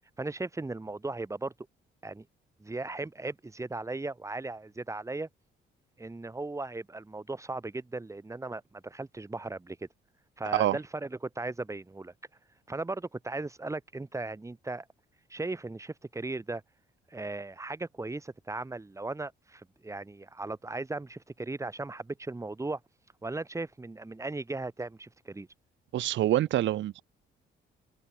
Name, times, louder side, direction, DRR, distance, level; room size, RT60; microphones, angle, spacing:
voice 1, 0.2-1.5 2.0-2.2 2.6-5.3 6.0-9.9 10.4-12.1 12.7-14.8 15.3-16.6 17.1-22.8 23.2-25.5, right 2 dB, 15° right, 1.5 m, -37 dB
voice 2, 25.9-27.0, right 13 dB, 70° right, 0.8 m, -26 dB
open air
cardioid pair, 90°, 20 cm